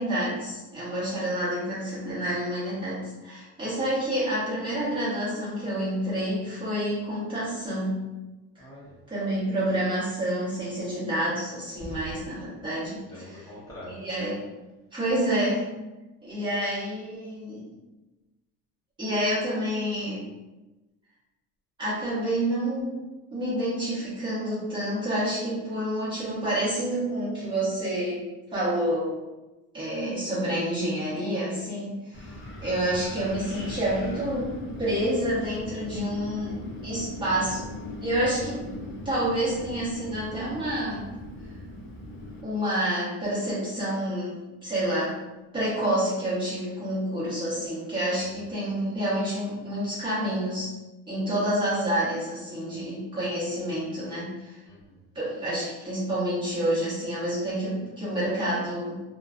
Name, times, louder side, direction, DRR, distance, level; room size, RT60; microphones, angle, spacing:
voice 1, 0.0-8.0 8.5-8.6 9.1-13.0 14.0-14.3 14.9-15.7 16.2-17.6 19.0-20.2 21.8-23.0 23.3-29.1 29.7-38.6 39.0-41.0 42.4-45.1 45.5-50.7 51.1-54.6 55.1-59.0, right 1 dB, 15° right, -10 dB, 0.9 m, -28 dB
voice 2, 8.6-8.9 11.8-12.3 13.0-14.2 32.3-32.7 48.2-48.6 54.7-55.1, equal, 10° left, -9 dB, 0.8 m, -44 dB
Wind, 32.1-42.4, left 1 dB, 35° left, 0.4 m, -39 dB
2.3 x 2.2 x 2.4 m, 1.1 s
cardioid pair, 170°, 32 cm